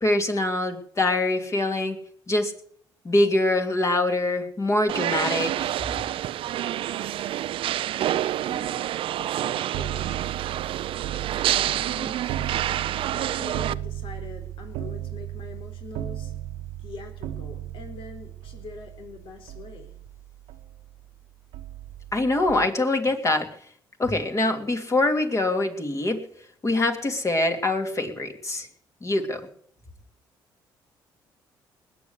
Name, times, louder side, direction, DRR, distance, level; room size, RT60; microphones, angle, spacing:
voice 1, 0.0-2.0 2.3-2.5 3.0-5.7 22.1-23.5 24.0-26.2 26.6-28.7 29.0-29.4, left 2 dB, 30° left, 5 dB, 3.0 m, -24 dB
sound 1, 4.9-13.7, right 12 dB, 70° right, 0.6 m, -28 dB
voice 2, 8.0-8.9 9.2-10.1 11.5-12.3 13.1-16.3 16.8-19.9, left 4 dB, 65° left, 4 dB, 4.0 m, -43 dB
sound 2, 9.7-21.1 21.5-22.7, right 12 dB, 85° right, 1.3 m, -36 dB
20.0 x 8.2 x 8.2 m, 0.63 s
supercardioid pair, 70°, 9 cm